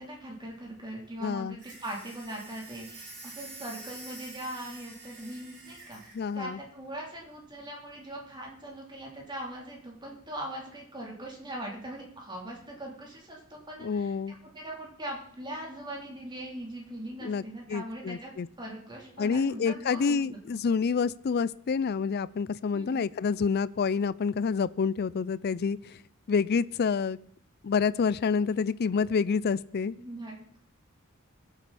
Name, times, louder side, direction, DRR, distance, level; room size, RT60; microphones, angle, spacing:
voice 1, 0.0-6.0 6.3-18.3 18.6-20.4 22.7-23.0 30.0-30.6, right 1 dB, 20° right, -2 dB, 3.3 m, -41 dB
voice 2, 1.2-1.6 6.1-6.6 13.8-14.4 17.2-17.4 17.7-18.5 19.2-26.0 26.3-27.2 27.6-29.9, left 5 dB, 50° left, 19 dB, 0.4 m, -28 dB
sound 1, 1.6-6.2, right 3 dB, 55° right, 6.9 m, -47 dB
22.0 x 8.1 x 4.2 m, 0.63 s
head